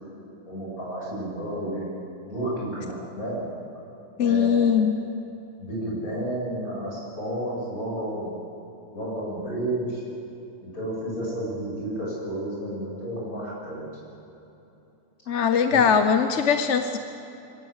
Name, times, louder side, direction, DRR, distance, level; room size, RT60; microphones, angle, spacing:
voice 1, 0.4-1.9 2.2-3.5 4.2-4.8 5.6-8.4 8.9-10.0 10.6-13.9 15.7-15.8, right 1 dB, 70° left, -4 dB, 8.5 m, -31 dB
voice 2, 4.2-4.9 15.3-17.0, left 7 dB, 55° left, 8 dB, 1.2 m, -21 dB
25.0 x 17.0 x 8.1 m, 3.0 s
omnidirectional pair, 1.6 m